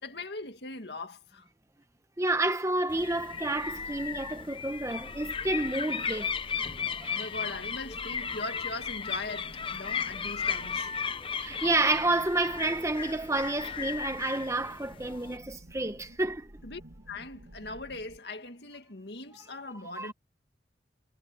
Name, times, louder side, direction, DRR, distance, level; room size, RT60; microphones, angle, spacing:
voice 1, 0.0-1.5 7.1-10.9 16.6-16.8 17.1-20.1, left 2 dB, 65° left, 2.2 m, -40 dB
voice 2, 2.2-7.5 11.4-16.5 20.0-20.1, right 2 dB, 15° right, 1.0 m, -30 dB
sound 1, 2.9-15.4, left 6 dB, 30° left, 0.8 m, -35 dB
sound 2, 2.9-18.2, right 1 dB, 75° right, 2.1 m, -51 dB
head